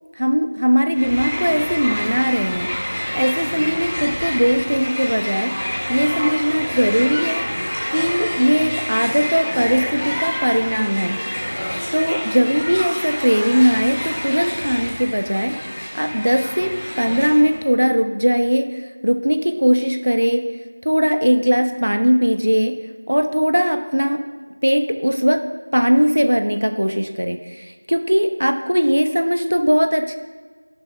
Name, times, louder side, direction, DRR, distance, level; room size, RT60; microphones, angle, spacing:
voice 1, 0.2-7.4 7.9-11.2 11.9-16.7 17.0-20.4 20.8-22.7 23.1-24.2 24.6-25.4 25.7-30.2, equal, 80° right, 7 dB, 0.9 m, -19 dB
Crowd, 0.9-17.6, equal, 20° left, 1.7 m, -27 dB
12.5 x 11.0 x 2.2 m, 1.5 s
figure-of-eight pair, 180°, 0 cm